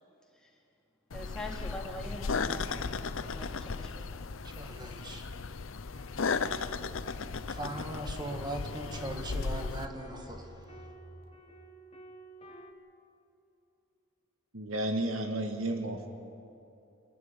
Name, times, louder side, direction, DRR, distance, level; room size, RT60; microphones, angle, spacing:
sound 1, 1.1-9.9, left 4 dB, 70° left, 0.7 m, -35 dB
voice 1, 1.1-4.3, left 1 dB, 5° left, -3 dB, 3.0 m, -44 dB
voice 2, 4.4-5.2 7.5-10.9, right 1 dB, 20° right, 4 dB, 2.0 m, -40 dB
sound 2, 5.9-12.7, right 1 dB, 30° left, 1.5 m, -53 dB
voice 3, 14.5-16.1, right 1 dB, 85° right, 5 dB, 1.8 m, -32 dB
29.0 x 11.0 x 9.7 m, 2.8 s
head